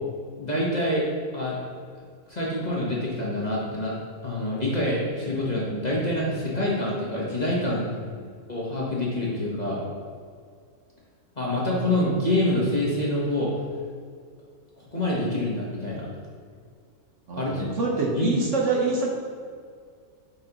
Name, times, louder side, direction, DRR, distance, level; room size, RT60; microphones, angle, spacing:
voice 1, 0.4-1.1 1.3-1.6 2.3-3.9 4.2-7.8 8.5-9.8 11.4-13.5 14.9-16.1 17.3-17.7 18.1-18.2, left 1 dB, 30° left, -5 dB, 1.2 m, -26 dB
voice 2, 7.8-8.2 17.3-19.1, right 3 dB, 55° right, -2 dB, 1.3 m, -26 dB
9.1 x 4.6 x 2.9 m, 2.1 s
omnidirectional pair, 1.6 m